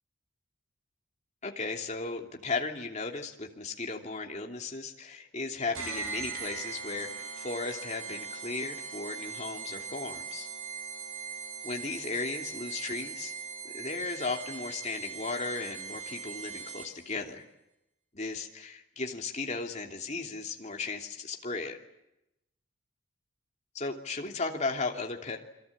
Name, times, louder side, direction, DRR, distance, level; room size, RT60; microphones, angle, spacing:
voice 1, 1.4-10.5 11.6-13.3 13.7-17.4 18.1-21.8 23.7-25.4, left 3 dB, 30° left, 2 dB, 2.9 m, -36 dB
sound 1, 5.7-17.1, right 5 dB, 75° right, 5.2 m, -40 dB
28.5 x 23.5 x 8.7 m, 0.89 s
head